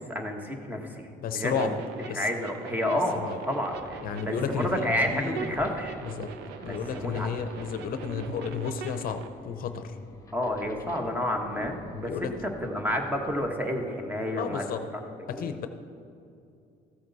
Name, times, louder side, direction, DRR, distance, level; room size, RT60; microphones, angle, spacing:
voice 1, 0.0-1.1 1.3-1.8 2.1-3.2 3.5-6.0 6.5-7.3 10.3-15.6, left 1 dB, 10° right, 3 dB, 1.3 m, -30 dB
voice 2, 1.2-1.7 2.1-2.3 3.2-3.4 4.0-5.4 6.2-6.3 6.6-10.0 11.9-12.3 14.4-14.8 15.3-15.7, left 6 dB, 60° left, 9 dB, 0.6 m, -32 dB
sound 1, 1.5-9.3, right 7 dB, 85° right, 0.7 m, -42 dB
sound 2, 3.7-13.6, left 1 dB, 20° left, 1.2 m, -47 dB
14.0 x 7.8 x 4.1 m, 2.5 s
cardioid pair, 110°, 17 cm